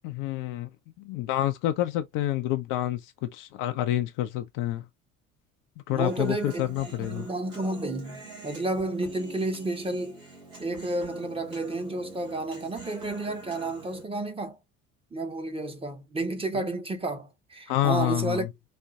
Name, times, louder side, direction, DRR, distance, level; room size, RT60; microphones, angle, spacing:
voice 1, 0.0-0.7 1.0-4.8 5.9-7.3 17.7-18.5, left 14 dB, 50° left, 0.5 m, -28 dB
voice 2, 5.9-10.2 10.6-14.6 15.1-18.5, right 2 dB, 15° right, 0.8 m, -31 dB
Human voice, 6.0-14.0, right 4 dB, 80° right, 1.6 m, -46 dB
4.2 x 2.6 x 2.3 m
figure-of-eight pair, 55°, 42 cm